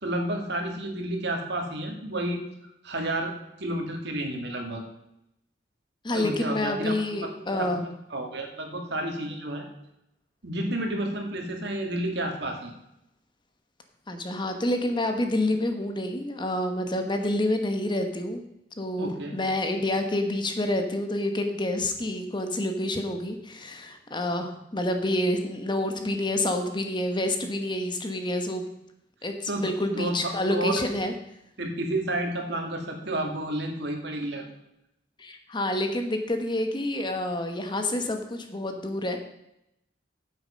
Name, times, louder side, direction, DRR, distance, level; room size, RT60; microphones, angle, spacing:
voice 1, 0.0-2.4 2.8-3.3 3.6-4.8 6.1-9.7 10.4-12.7 19.0-19.3 29.5-30.2 30.5-30.7 31.6-34.5, right 1 dB, 65° right, 2 dB, 2.2 m, -31 dB
voice 2, 6.0-7.8 14.1-18.4 18.8-28.7 29.2-31.1 35.2-39.2, left 1 dB, 25° left, 6 dB, 1.2 m, -28 dB
9.6 x 8.0 x 5.2 m, 0.82 s
head